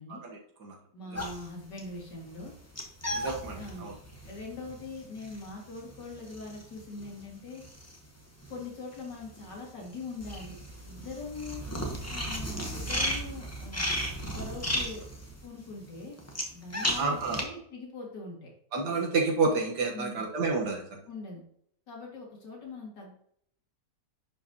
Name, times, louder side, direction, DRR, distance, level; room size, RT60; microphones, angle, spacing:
voice 1, 0.1-0.8 1.1-1.3 3.1-3.9 17.0-17.4 18.7-21.0, right 4 dB, 70° right, 1 dB, 1.8 m, -30 dB
voice 2, 0.9-2.5 3.5-3.9 4.2-7.6 8.5-10.6 10.9-11.6 12.1-13.8 14.3-15.0 15.4-16.2 16.5-18.5 19.9-20.2 21.1-21.4 21.9-23.1, left 3 dB, 80° left, -2 dB, 2.8 m, -42 dB
sound 1, 1.1-8.7 8.9-17.4, equal, 10° left, 0.8 m, -35 dB
10.5 x 5.2 x 2.8 m, 0.66 s
omnidirectional pair, 1.8 m